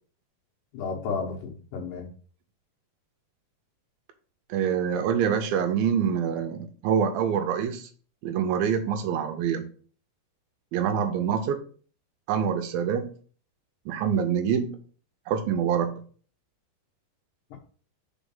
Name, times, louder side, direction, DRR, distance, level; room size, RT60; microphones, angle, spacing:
voice 1, 0.7-2.1 17.5-17.6, left 5 dB, 65° left, 1 dB, 2.6 m, -33 dB
voice 2, 4.5-7.9 8.2-9.7 10.7-11.6 12.3-13.1 13.9-14.8 15.3-16.0, right 7 dB, 80° right, 7 dB, 2.4 m, -25 dB
5.1 x 5.0 x 5.5 m, 0.42 s
omnidirectional pair, 4.5 m